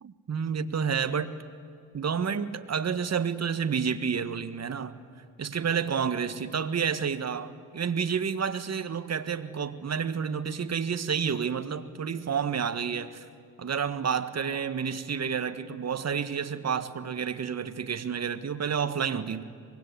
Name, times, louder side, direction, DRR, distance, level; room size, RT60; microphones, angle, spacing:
voice 1, 0.0-1.4 1.9-5.0 5.4-13.2 13.6-19.4, right 6 dB, 35° right, 1.6 m, -30 dB
25.0 x 21.5 x 9.7 m
hypercardioid pair, 55°, 45 cm